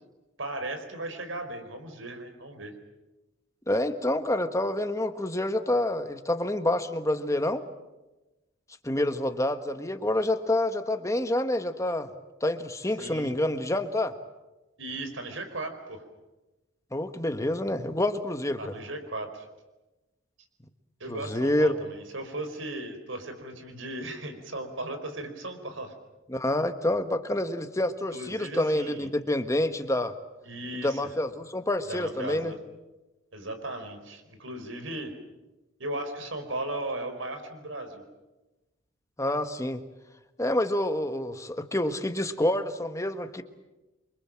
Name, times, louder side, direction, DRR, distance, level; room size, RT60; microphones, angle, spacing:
voice 1, 0.4-2.7 13.0-13.3 14.8-16.0 18.6-19.5 21.0-25.9 28.1-29.1 30.4-31.0 31.9-32.6 33.3-35.1 35.8-38.0, right 2 dB, 75° right, 7 dB, 4.7 m, -36 dB
voice 2, 3.7-7.6 8.8-12.1 12.4-14.1 16.9-18.7 21.1-21.7 26.3-30.1 30.7-32.5 39.2-39.8 40.4-43.4, left 1 dB, 15° left, 8 dB, 1.5 m, -27 dB
28.0 x 24.5 x 7.6 m, 1.1 s
head